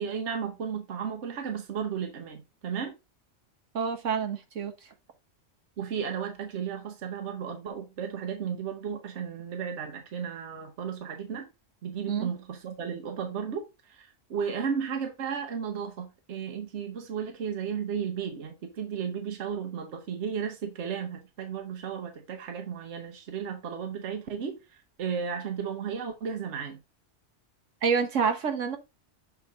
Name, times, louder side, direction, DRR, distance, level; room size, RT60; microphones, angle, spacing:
voice 1, 0.0-2.9 5.8-11.5 11.8-26.8, right 7 dB, 70° right, 1.2 m, -34 dB
voice 2, 3.7-4.7 12.1-12.3 27.8-28.8, right 6 dB, 85° right, 1.5 m, -27 dB
6.8 x 4.0 x 3.9 m
omnidirectional pair, 1.2 m